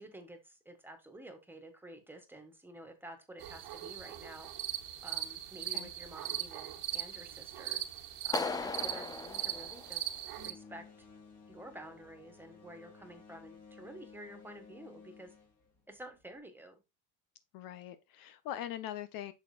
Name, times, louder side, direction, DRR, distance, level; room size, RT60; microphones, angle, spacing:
voice 1, 0.0-4.5 5.0-7.8 8.2-10.1 10.4-10.8 11.5-15.3 15.9-16.8, right 1 dB, 5° right, 1.6 m, -50 dB
sound 1, 3.4-10.5, right 13 dB, 60° right, 1.6 m, -40 dB
Clapping, 8.3-10.4, left 4 dB, 10° left, 0.3 m, -38 dB
sound 2, 10.4-16.4, left 5 dB, 40° left, 2.8 m, -56 dB
voice 2, 17.5-19.3, left 11 dB, 60° left, 0.8 m, -42 dB
8.1 x 6.3 x 2.4 m
supercardioid pair, 120°, 40 cm